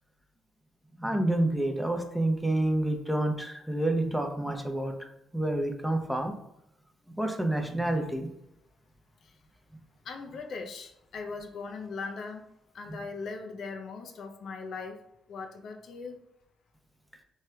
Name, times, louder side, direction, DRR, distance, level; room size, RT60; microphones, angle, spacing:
voice 1, 1.0-4.9 5.3-6.3 7.1-8.3, right 1 dB, ahead, 4 dB, 0.6 m, -28 dB
voice 2, 10.0-12.4 12.7-15.0 15.3-16.2, left 4 dB, 65° left, 4 dB, 0.4 m, -39 dB
3.1 x 3.1 x 2.3 m, 0.85 s
supercardioid pair, 60°, 0 cm